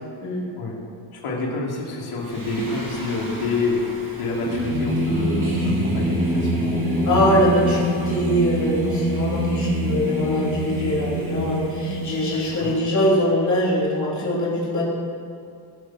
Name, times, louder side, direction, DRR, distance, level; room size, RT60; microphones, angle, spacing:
voice 1, 1.1-7.7 8.0-8.2 12.3-12.7, left 3 dB, 90° left, -3 dB, 3.0 m, -28 dB
Singing, 2.3-12.7, right 1 dB, 25° right, 3.6 m, -25 dB
voice 2, 7.0-14.8, left 1 dB, 35° left, -5 dB, 3.4 m, -22 dB
20.5 x 7.6 x 6.2 m, 2.4 s
wide cardioid pair, 180°, 49 cm